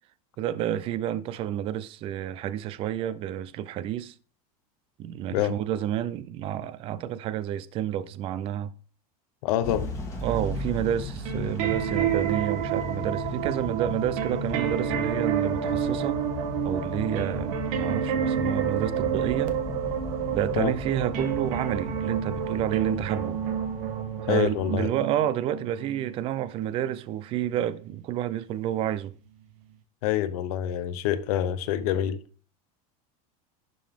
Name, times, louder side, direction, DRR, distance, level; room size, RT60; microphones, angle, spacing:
voice 1, 0.4-4.1 5.0-8.7 10.2-16.2 16.6-19.6 20.3-23.4 24.2-29.1, right 11 dB, 30° right, 0.4 m, -29 dB
voice 2, 9.4-9.9 20.6-20.7 24.3-24.9 30.0-32.2, left 11 dB, 70° left, 0.8 m, -26 dB
Motor vehicle (road) / Engine starting / Accelerating revving vroom, 9.6-24.6, left 3 dB, 15° left, 1.6 m, -36 dB
sound 1, 11.1-27.9 28.6-28.7, right 9 dB, 70° right, 1.2 m, -30 dB
11.0 x 3.8 x 3.5 m
supercardioid pair, 160°, 19 cm